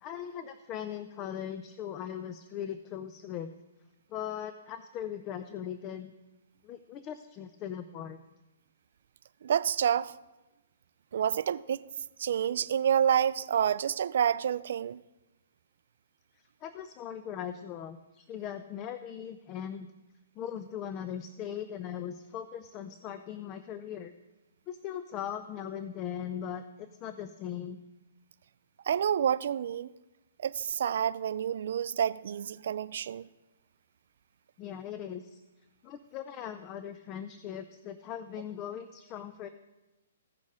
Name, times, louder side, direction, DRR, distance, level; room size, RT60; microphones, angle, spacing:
voice 1, 0.0-3.5 4.1-6.1 6.6-8.2 16.4-19.9 20.4-24.1 24.7-27.8 34.6-35.4 35.8-39.5, left 9 dB, 25° left, 0.4 m, -39 dB
voice 2, 9.4-10.2 11.1-11.9 12.2-15.0 28.9-29.9 30.4-33.3, right 9 dB, 60° right, 0.3 m, -28 dB
15.5 x 6.3 x 3.7 m
hypercardioid pair, 155°, 0 cm